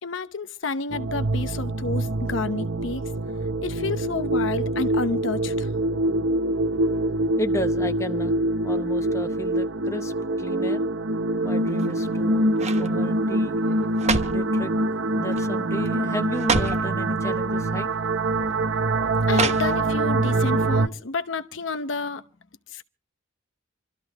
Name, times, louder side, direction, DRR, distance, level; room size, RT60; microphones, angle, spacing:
voice 1, 0.0-3.0 3.6-5.7 19.3-22.2 22.7-22.8, left 3 dB, 70° left, 0.9 m, -30 dB
sound 1, 0.9-20.9, right 2 dB, 65° right, 0.7 m, -24 dB
voice 2, 7.4-8.3 8.6-10.1 10.4-10.9 11.4-13.6 14.3-14.7 15.2-17.9, left 1 dB, 15° left, 0.8 m, -33 dB
sound 2, 11.7-12.1 12.6-12.9 13.7-14.5 15.3-15.6 15.9-16.0 16.3-16.9 17.8-18.0 19.3-20.1 20.5-20.6, right 4 dB, 35° right, 1.0 m, -27 dB
27.0 x 13.0 x 3.0 m
head